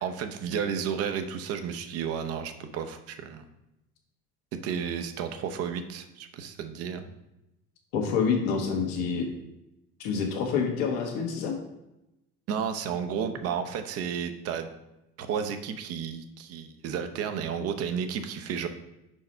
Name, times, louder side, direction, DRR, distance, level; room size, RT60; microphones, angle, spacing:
voice 1, 0.0-3.4 4.5-7.1 12.5-14.7 15.2-18.7, right 7 dB, 55° right, 8 dB, 0.8 m, -32 dB
voice 2, 7.9-9.2 10.0-11.5, left 6 dB, 85° left, 2 dB, 1.4 m, -27 dB
5.3 x 4.7 x 4.4 m, 0.90 s
supercardioid pair, 115°, 29 cm